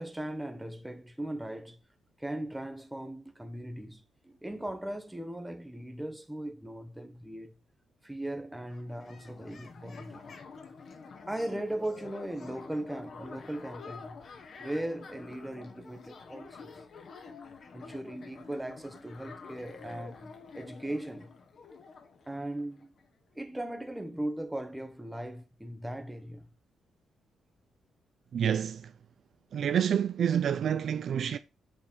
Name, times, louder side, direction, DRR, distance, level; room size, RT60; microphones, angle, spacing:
voice 1, 0.0-1.8 2.2-7.5 8.0-10.3 11.3-14.2 14.6-16.8 17.7-21.3 22.3-22.9 23.3-26.5, right 1 dB, 5° right, 1.2 m, -38 dB
sound 1, 8.2-8.3 8.5-23.1, left 5 dB, 40° left, 1.6 m, -48 dB
voice 2, 28.3-28.9 29.5-31.4, right 8 dB, 50° right, 0.5 m, -28 dB
8.7 x 5.6 x 4.4 m
cardioid pair, 165°, 0 cm